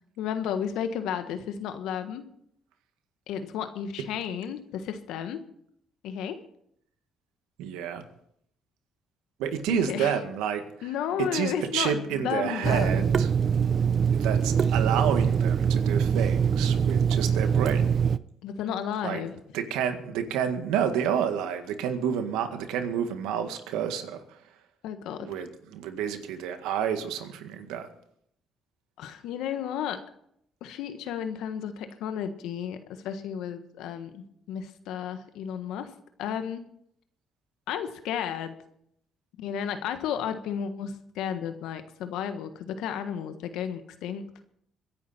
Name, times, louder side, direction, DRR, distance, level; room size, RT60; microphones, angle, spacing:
voice 1, 0.2-2.2 3.3-5.4 6.0-6.4 9.7-10.1 10.8-13.1 18.4-19.3 24.8-25.3 29.0-30.0 30.6-34.2 34.5-35.9 36.2-36.6 37.7-38.5 39.4-44.2, left 8 dB, 80° left, 9 dB, 1.4 m, -33 dB
voice 2, 7.6-8.0 9.4-10.9 11.2-13.3 14.1-17.9 19.0-19.2 19.5-24.4 25.2-27.9, right 8 dB, 85° right, 7 dB, 1.8 m, -29 dB
Water tap faucet / Sink (filling or washing), 12.6-18.2, right 7 dB, 50° right, 0.6 m, -23 dB
23.5 x 10.5 x 4.4 m, 0.71 s
supercardioid pair, 70°, 0 cm